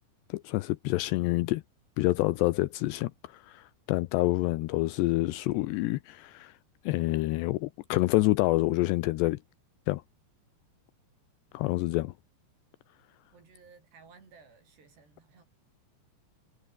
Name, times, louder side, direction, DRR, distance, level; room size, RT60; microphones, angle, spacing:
voice 1, 0.3-1.6 2.0-6.6 6.8-9.4 9.9-10.0 11.5-12.1, left 19 dB, 80° left, 2.9 m, -27 dB
voice 2, 13.3-15.4, right 5 dB, 70° right, 9.1 m, -56 dB
omnidirectional pair, 5.0 m